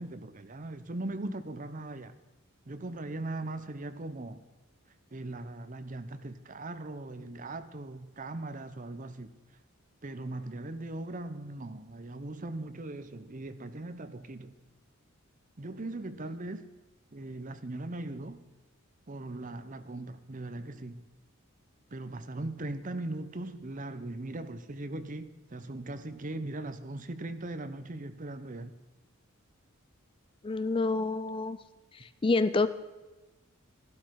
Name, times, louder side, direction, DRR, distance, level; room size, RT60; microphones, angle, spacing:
voice 1, 0.0-2.1 2.7-4.4 5.1-9.3 10.0-14.5 15.6-16.7 17.1-18.4 19.1-21.0 21.9-28.7, right 2 dB, 35° right, 0.8 m, -39 dB
voice 2, 30.4-31.6 31.9-32.7, left 3 dB, 25° left, 0.4 m, -28 dB
14.5 x 12.0 x 4.7 m
head